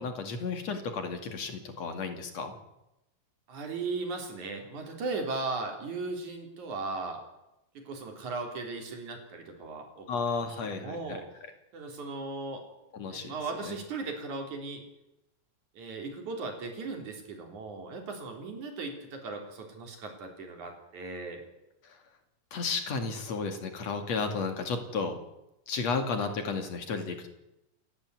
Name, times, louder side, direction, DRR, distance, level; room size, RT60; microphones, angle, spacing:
voice 1, 0.0-2.6 10.1-11.2 12.9-13.3 13.6-13.8 21.8-22.0 22.5-25.2 25.7-27.3, left 4 dB, 60° left, 6 dB, 3.4 m, -33 dB
voice 2, 3.5-7.2 7.7-10.1 10.7-11.2 11.7-12.6 13.1-14.8 15.7-21.4, right 3 dB, 75° right, 3 dB, 4.9 m, -37 dB
28.0 x 11.5 x 9.6 m, 0.92 s
omnidirectional pair, 3.4 m